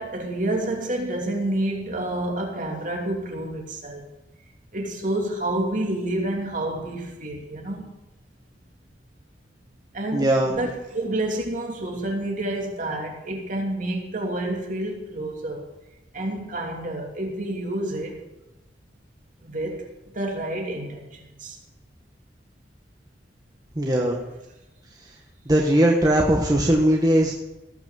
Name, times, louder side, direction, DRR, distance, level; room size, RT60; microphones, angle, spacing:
voice 1, 0.0-4.1 4.7-7.8 9.9-15.7 16.1-18.2 19.4-21.6 24.0-24.3, right 1 dB, 50° right, 2.9 m, -29 dB
voice 2, 10.1-10.5 23.7-24.2 25.5-27.4, right 1 dB, 20° right, 1.5 m, -19 dB
18.0 x 6.1 x 7.6 m
head